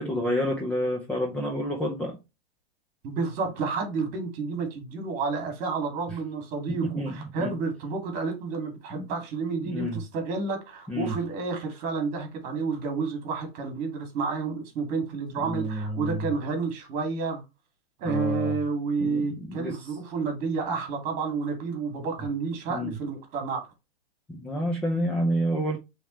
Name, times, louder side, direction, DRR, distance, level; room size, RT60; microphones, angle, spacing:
voice 1, 0.0-2.2 6.7-7.5 9.0-9.1 9.6-10.0 10.9-11.1 15.4-16.3 18.0-18.6 19.0-20.0 22.7-23.0 24.3-25.8, equal, 5° left, 0.6 m, -29 dB
voice 2, 3.0-17.4 18.0-23.7, right 4 dB, 30° right, 2.3 m, -30 dB
8.1 x 3.6 x 3.2 m
supercardioid pair, 165°, 29 cm